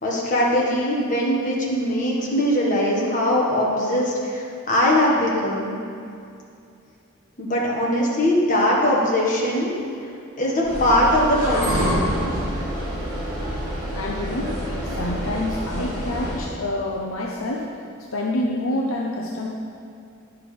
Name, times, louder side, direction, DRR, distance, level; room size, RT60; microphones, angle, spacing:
voice 1, 0.0-5.8 7.4-9.7 10.4-12.0, left 1 dB, 35° left, -4 dB, 1.6 m, -21 dB
sound 1, 10.6-16.4, equal, 15° right, 2.5 m, -27 dB
voice 2, 13.9-14.5 14.8-17.7 18.1-19.5, left 1 dB, 65° left, -2 dB, 0.8 m, -27 dB
10.5 x 5.8 x 5.1 m, 2.5 s
head